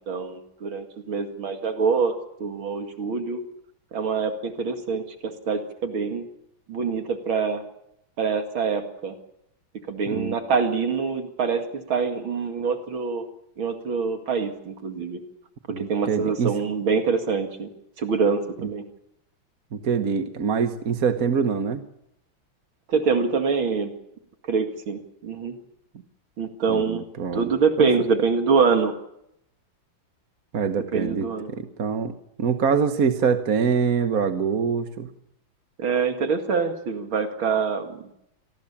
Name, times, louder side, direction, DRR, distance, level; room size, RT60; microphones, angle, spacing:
voice 1, 0.0-2.1 2.4-3.4 3.9-6.3 6.7-7.6 8.2-9.1 9.9-13.3 13.6-15.2 15.7-17.7 18.0-18.8 22.9-23.9 24.4-25.6 26.4-27.0 27.3-28.9 30.9-31.5 35.8-38.1, right 5 dB, 90° right, 5 dB, 3.0 m, -25 dB
voice 2, 15.7-16.5 19.7-21.8 26.7-27.5 27.8-27.9 30.5-35.1, right 6 dB, 50° right, 8 dB, 1.5 m, -24 dB
27.0 x 19.0 x 7.3 m, 0.79 s
omnidirectional pair, 2.2 m